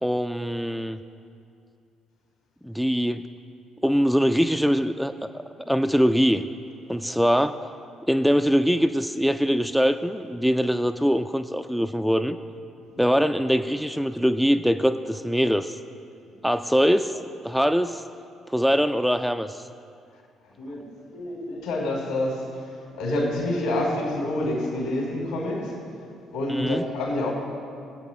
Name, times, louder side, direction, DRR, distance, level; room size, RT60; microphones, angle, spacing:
voice 1, 0.0-1.0 2.6-3.3 3.8-5.1 5.6-6.4 6.9-7.7 8.1-12.4 13.0-15.8 16.4-18.0 18.5-19.6 26.5-26.8, equal, ahead, 8 dB, 0.4 m, -23 dB
voice 2, 16.3-16.7 20.6-20.8 21.1-22.7 23.0-25.8 26.3-27.3, left 1 dB, 75° left, -3 dB, 3.3 m, -28 dB
22.0 x 8.5 x 3.0 m, 2.5 s
figure-of-eight pair, 50°, 0 cm